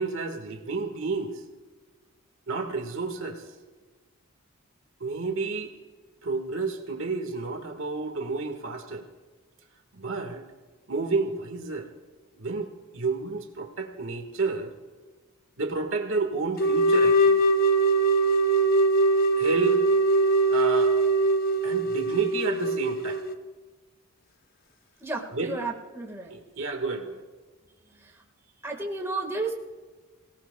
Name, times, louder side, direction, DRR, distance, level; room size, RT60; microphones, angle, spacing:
voice 1, 0.0-1.3 2.5-3.4 5.0-5.7 6.2-9.0 9.9-10.4 10.9-11.9 12.4-14.7 15.6-17.4 19.4-19.8 20.5-20.9 21.6-23.2 25.3-25.5 26.3-27.2, right 3 dB, 65° right, 4 dB, 1.6 m, -30 dB
sound 1, 16.6-23.3, right 2 dB, 45° left, 0.7 m, -22 dB
voice 2, 25.0-26.3 28.0-28.1 28.6-29.5, right 3 dB, 10° right, 0 dB, 1.6 m, -32 dB
26.5 x 17.5 x 2.3 m, 1.3 s
head